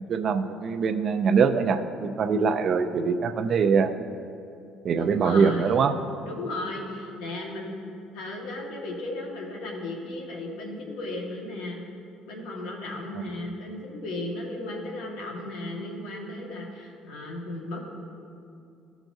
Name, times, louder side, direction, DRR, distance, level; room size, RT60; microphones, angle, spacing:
voice 1, 0.1-3.9 4.8-6.0, right 5 dB, 40° right, 7 dB, 0.5 m, -23 dB
voice 2, 4.9-5.8 6.2-7.8 8.1-11.8 12.3-17.8, left 2 dB, 80° left, -1 dB, 1.7 m, -35 dB
16.0 x 6.0 x 2.7 m, 2.5 s
cardioid pair, 135°, 0 cm